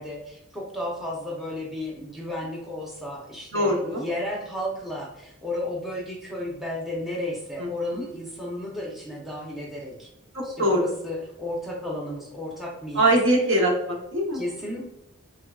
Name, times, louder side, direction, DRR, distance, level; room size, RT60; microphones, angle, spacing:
voice 1, 0.0-10.1 10.4-13.2 14.3-14.8, left 1 dB, ahead, -3 dB, 0.6 m, -33 dB
voice 2, 3.5-4.1 7.6-8.0 10.3-10.9 12.9-14.4, right 1 dB, 65° right, -1 dB, 0.9 m, -23 dB
3.5 x 3.4 x 2.3 m, 0.84 s
head